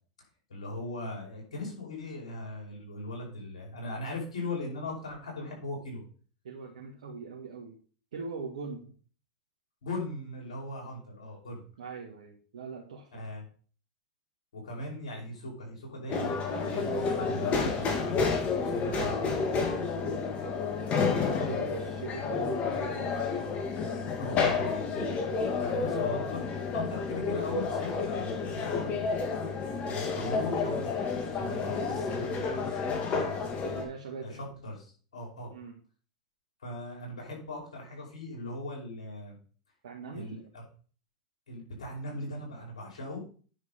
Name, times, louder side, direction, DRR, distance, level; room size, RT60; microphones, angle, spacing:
voice 1, 0.5-6.0 9.8-11.6 13.1-13.4 14.5-19.3 21.2-21.6 24.2-25.1 25.6-26.5 26.7-28.9 29.9-33.4 34.2-35.5 36.6-39.4 40.1-40.6 41.5-43.2, left 1 dB, 85° left, -1 dB, 5.3 m, -39 dB
voice 2, 6.4-7.7 8.1-8.8 11.8-13.2 18.8-19.2 20.7-23.2 33.6-34.4 35.5-35.7 39.8-40.4, right 4 dB, 80° right, 0 dB, 1.6 m, -41 dB
sound 1, 16.1-33.8, left 4 dB, 40° left, 2.5 m, -30 dB
9.8 x 6.4 x 4.3 m, 0.41 s
hypercardioid pair, 100°, 4 cm